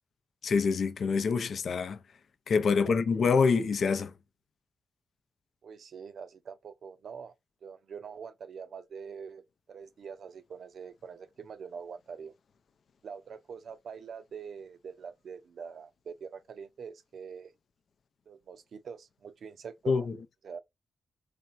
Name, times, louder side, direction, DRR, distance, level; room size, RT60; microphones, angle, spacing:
voice 1, 0.4-2.0 2.5-4.1 19.9-20.1, left 5 dB, 70° left, 0.5 m, -26 dB
voice 2, 5.6-7.3 7.6-12.3 13.0-17.5 18.3-20.1 20.4-20.6, right 6 dB, 75° right, 0.6 m, -44 dB
4.2 x 3.3 x 2.5 m
cardioid pair, 75°, 0 cm